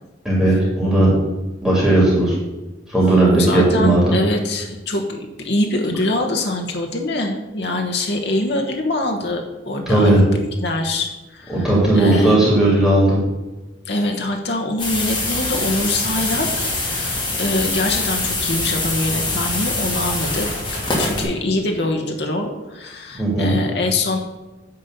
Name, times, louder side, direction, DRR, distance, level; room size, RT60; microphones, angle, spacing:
voice 1, 0.2-1.1 1.6-2.3 2.9-4.2 9.9-10.2 11.5-13.2 23.2-23.5, right 1 dB, ahead, -6 dB, 2.7 m, -16 dB
voice 2, 3.0-11.7 11.9-12.6 13.8-24.2, left 2 dB, 55° left, 2 dB, 1.0 m, -24 dB
sound 1, 14.8-21.2, left 2 dB, 20° left, 2.4 m, -24 dB
9.6 x 4.1 x 6.6 m, 1.1 s
head